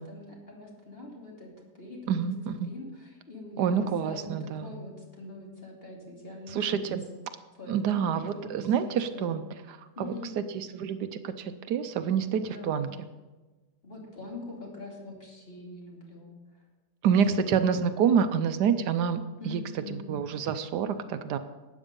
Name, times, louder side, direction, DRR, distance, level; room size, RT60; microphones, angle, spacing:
voice 1, 0.0-2.2 2.6-4.3 4.6-7.0 7.6-9.4 9.9-10.3 12.4-12.8 13.8-16.3 19.4-20.0, left 2 dB, 35° left, -2 dB, 2.9 m, -44 dB
voice 2, 2.1-2.7 3.6-4.7 6.5-7.0 7.7-9.4 9.7-12.9 17.0-21.4, right 7 dB, 75° right, 10 dB, 1.2 m, -28 dB
12.5 x 8.9 x 5.3 m, 1.2 s
omnidirectional pair, 1.8 m